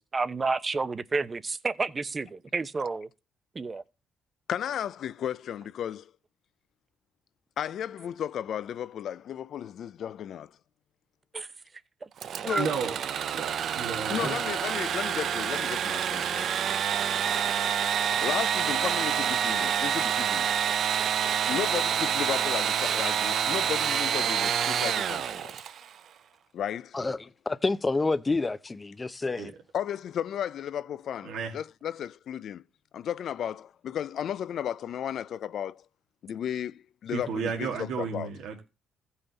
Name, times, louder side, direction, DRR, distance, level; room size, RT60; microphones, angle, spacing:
voice 1, 0.0-3.1 3.5-3.8 11.3-11.5 12.0-12.1 12.4-12.6, right 4 dB, 30° right, 0.8 m, -30 dB
voice 2, 4.5-6.1 7.6-10.5 12.3-12.7 14.1-16.5 18.1-20.5 21.5-25.5 26.5-27.0 29.7-32.6 32.9-35.8 36.2-38.3, left 9 dB, 65° left, 0.5 m, -34 dB
Engine / Sawing, 12.2-25.9, right 8 dB, 65° right, 0.6 m, -27 dB
voice 3, 12.5-12.9 13.3-14.4 29.4-29.5 31.2-31.5 37.1-38.6, right 6 dB, 80° right, 1.8 m, -33 dB
voice 4, 26.9-29.5, left 3 dB, 20° left, 0.6 m, -28 dB
15.5 x 5.6 x 4.0 m
cardioid pair, 100°, 0 cm